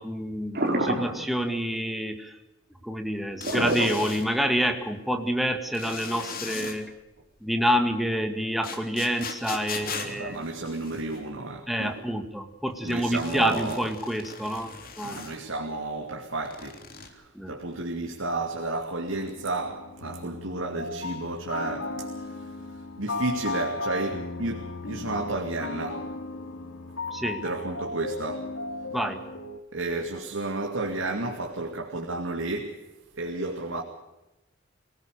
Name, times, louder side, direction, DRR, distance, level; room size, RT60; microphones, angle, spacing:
voice 1, 0.0-2.3 2.8-6.9 7.4-10.4 11.7-15.2 17.3-17.5 27.1-27.4 28.9-29.2, equal, ahead, 5 dB, 2.0 m, -28 dB
sound 1, 0.5-1.3 3.4-4.5 5.2-5.3, right 1 dB, 50° right, 4.2 m, -27 dB
sound 2, 3.4-4.3 5.7-6.8 8.6-11.2 12.9-15.4 16.4-17.1, left 5 dB, 45° left, 3.5 m, -39 dB
voice 2, 9.7-12.1 12.8-13.8 15.0-22.5 23.0-26.1 27.4-28.5 29.7-32.8 33.2-33.8, right 2 dB, 85° right, 2 dB, 2.5 m, -32 dB
sound 3, 19.2-29.6, left 3 dB, 90° left, 3.2 m, -36 dB
24.5 x 18.5 x 6.7 m, 0.98 s
head